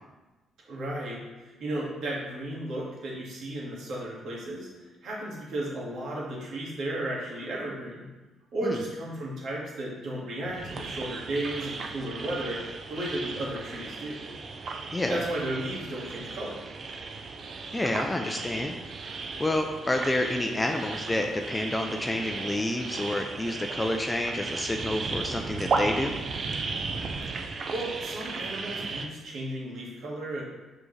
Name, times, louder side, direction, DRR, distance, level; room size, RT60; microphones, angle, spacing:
voice 1, 0.7-8.1 8.5-14.3 15.1-16.6 27.5-30.4, right 1 dB, 70° right, -4 dB, 1.9 m, -34 dB
sound 1, 10.4-29.1, right 4 dB, 50° right, 0.6 m, -35 dB
voice 2, 14.9-15.2 17.7-18.8 19.4-26.2, left 1 dB, 15° left, 3 dB, 0.5 m, -29 dB
6.1 x 4.9 x 3.3 m, 1.1 s
cardioid pair, 90°, 0 cm